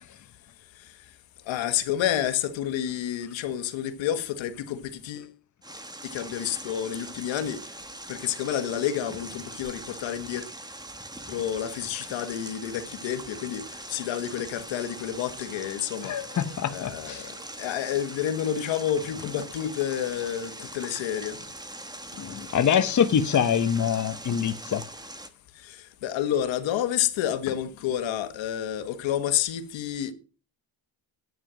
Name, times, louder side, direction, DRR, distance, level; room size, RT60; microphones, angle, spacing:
voice 1, 1.5-5.3 6.1-7.6 8.1-10.4 11.3-13.6 13.9-16.1 16.7-21.4 25.6-30.1, left 10 dB, 85° left, 1.6 m, -29 dB
sound 1, 5.6-25.3, right 1 dB, 10° right, 1.4 m, -42 dB
voice 2, 16.1-17.2 22.2-24.8, left 8 dB, 40° left, 1.1 m, -24 dB
11.0 x 9.2 x 6.3 m
cardioid pair, 115°, 45 cm